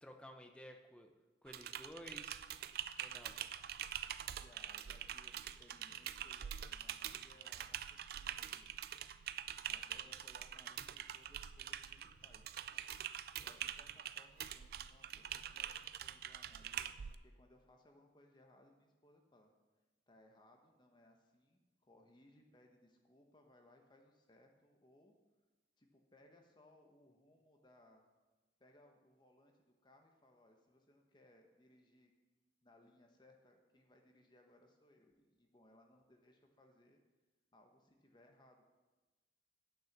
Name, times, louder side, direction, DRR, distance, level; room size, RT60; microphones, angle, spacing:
voice 1, 0.0-1.1 1.4-2.4 3.0-3.4, equal, 5° left, 5 dB, 0.7 m, -54 dB
Typing, 1.5-17.1, right 10 dB, 55° right, 0.4 m, -45 dB
voice 2, 4.2-8.7 9.7-12.6 13.4-16.9 17.2-19.5 20.1-25.1 25.8-28.0 28.6-32.1 32.6-37.0 37.5-38.7, left 1 dB, 25° left, 3 dB, 1.0 m, -67 dB
8.8 x 6.2 x 7.3 m, 1.2 s
head